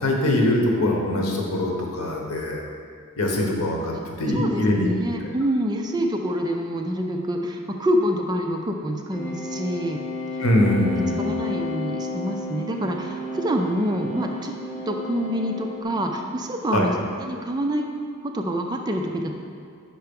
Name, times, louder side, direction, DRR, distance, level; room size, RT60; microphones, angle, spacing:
voice 1, 0.0-2.6 3.2-4.9 10.4-11.3 16.7-16.9, left 1 dB, 80° left, 0 dB, 1.0 m, -22 dB
voice 2, 4.3-10.0 11.2-14.5 14.9-16.9 17.2-17.9 18.2-19.3, equal, 20° right, 3 dB, 0.4 m, -26 dB
sound 1, 9.1-15.8, left 2 dB, 50° left, 1.6 m, -32 dB
5.6 x 4.5 x 5.2 m, 2.3 s
head